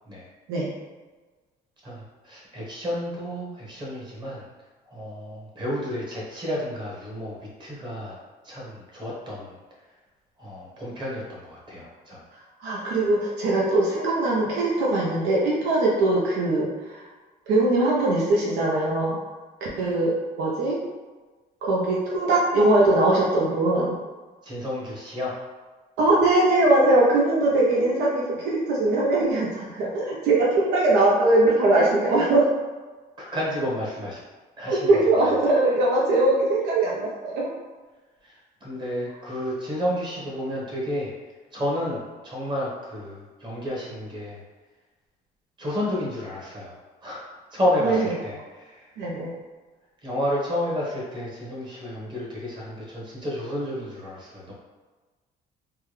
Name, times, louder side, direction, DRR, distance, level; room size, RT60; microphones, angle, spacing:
voice 1, 1.8-4.4 4.9-8.2 8.4-9.6 10.4-12.2 24.4-25.3 33.2-34.2 34.6-35.0 38.2-41.1 41.5-44.4 45.6-48.9 50.0-54.5, equal, 30° right, -4 dB, 1.2 m, -31 dB
voice 2, 12.6-17.0 17.5-19.2 19.6-20.1 20.4-20.8 21.6-23.9 26.0-32.5 34.6-37.5 47.8-48.0 49.0-49.3, right 2 dB, 85° right, -4 dB, 0.7 m, -21 dB
3.4 x 2.2 x 3.2 m, 1.3 s
cardioid pair, 110°, 17 cm